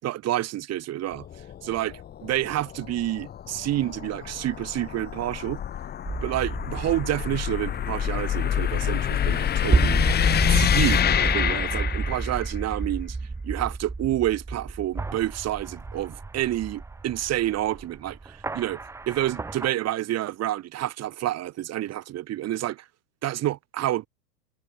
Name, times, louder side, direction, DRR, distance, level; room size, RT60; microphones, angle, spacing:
voice 1, 0.0-1.3 1.6-5.6 6.2-10.0 10.5-13.2 13.4-22.8 23.2-24.1, right 14 dB, 30° right, 4.0 m, -29 dB
sound 1, 1.1-12.5, left 10 dB, 20° left, 1.3 m, -27 dB
sound 2, 6.1-19.7, right 3 dB, 5° right, 0.8 m, -31 dB
hypercardioid pair, 100°, 47 cm